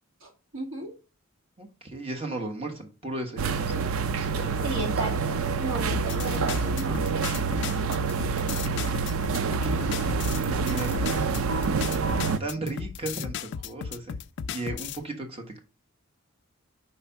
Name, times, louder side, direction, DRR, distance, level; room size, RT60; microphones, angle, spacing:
voice 1, 0.2-0.9 4.6-7.4, right 2 dB, 70° right, 2.1 m, -35 dB
voice 2, 1.6-4.9 9.4-11.5 12.0-14.2 14.5-15.6, right 2 dB, 30° right, 1.2 m, -37 dB
sound 1, 3.4-12.4, right 5 dB, 85° right, 0.5 m, -27 dB
sound 2, 5.9-15.0, left 7 dB, 55° left, 0.3 m, -35 dB
5.5 x 3.3 x 5.6 m
head